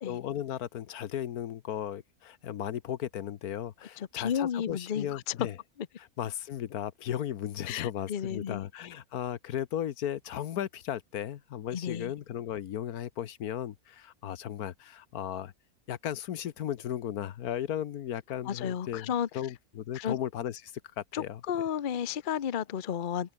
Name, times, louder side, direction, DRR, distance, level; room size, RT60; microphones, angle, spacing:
voice 1, 0.0-5.6 6.0-15.5 15.9-21.4, left 10 dB, 80° left, 1.4 m, -36 dB
voice 2, 4.0-5.2 7.7-8.6 11.7-12.1 18.5-19.3 19.9-20.2 21.1-23.3, left 9 dB, 45° left, 0.7 m, -32 dB
omnidirectional pair, 1.6 m